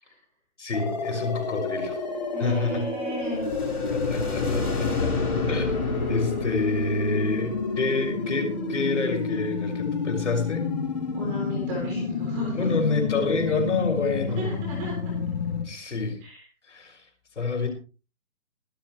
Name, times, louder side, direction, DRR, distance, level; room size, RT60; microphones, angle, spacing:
voice 1, 0.6-2.0 2.4-2.9 3.9-5.2 5.5-10.7 12.5-14.5 15.6-16.2 16.7-17.1 17.3-17.7, left 3 dB, 55° left, 4 dB, 6.3 m, -28 dB
sound 1, 0.7-15.6, left 4 dB, 30° left, 3.0 m, -30 dB
voice 2, 2.3-3.5 11.1-12.7 14.4-14.9 16.2-16.4, right 1 dB, 10° right, -3 dB, 3.6 m, -34 dB
sound 2, 3.2-8.3, left 3 dB, 85° left, 7.3 m, -30 dB
18.5 x 14.0 x 3.3 m, 0.35 s
hypercardioid pair, 180°, 44 cm